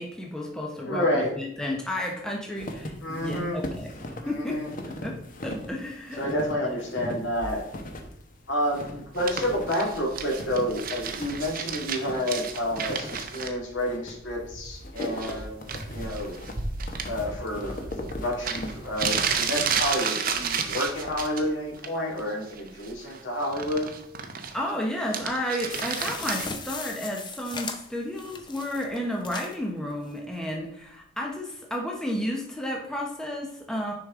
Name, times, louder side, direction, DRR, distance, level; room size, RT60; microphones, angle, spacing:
voice 1, 0.0-3.9 4.3-4.6 4.8-5.2 5.4-6.3 24.5-33.9, left 1 dB, 5° left, -1 dB, 0.8 m, -32 dB
voice 2, 0.8-1.3 3.0-3.6 4.2-4.7 6.2-7.6 8.5-16.4 17.1-23.9, equal, 65° left, -2 dB, 2.1 m, -29 dB
sound 1, 2.5-21.7, left 1 dB, 45° left, 0.9 m, -39 dB
sound 2, 9.2-13.5 15.0-15.4 15.7-17.1 18.1-18.2 18.4-21.4 21.8-22.2 22.5-24.7 25.0-26.5, right 6 dB, 45° right, 0.7 m, -31 dB
sound 3, 25.7-29.6 30.1-30.2 30.4-30.5, left 4 dB, 25° left, 0.5 m, -38 dB
6.5 x 5.2 x 3.6 m, 0.76 s
head